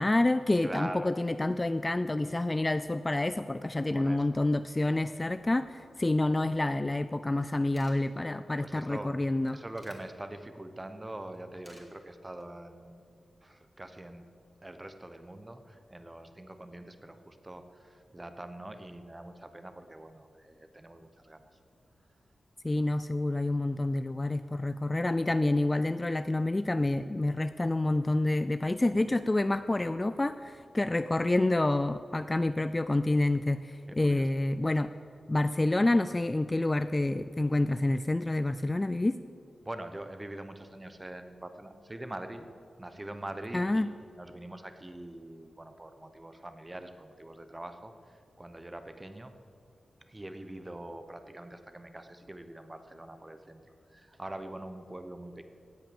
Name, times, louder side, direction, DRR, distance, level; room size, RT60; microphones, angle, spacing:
voice 1, 0.0-9.6 22.6-34.9 35.3-39.2 43.5-43.9, left 2 dB, 20° left, 12 dB, 0.3 m, -28 dB
voice 2, 0.6-1.1 3.9-4.4 8.5-9.2 9.5-13.0 13.4-14.2 14.6-21.5 33.9-34.3 39.6-42.5 42.8-49.3 50.1-53.6 53.9-55.4, right 1 dB, 20° right, 8 dB, 1.0 m, -44 dB
sound 1, 7.2-7.3 7.5-8.0 9.2-10.0 11.3-11.9 12.2-12.5, equal, ahead, 2.4 m, -55 dB
16.5 x 9.1 x 7.0 m, 2.4 s
wide cardioid pair, 110°, 0 cm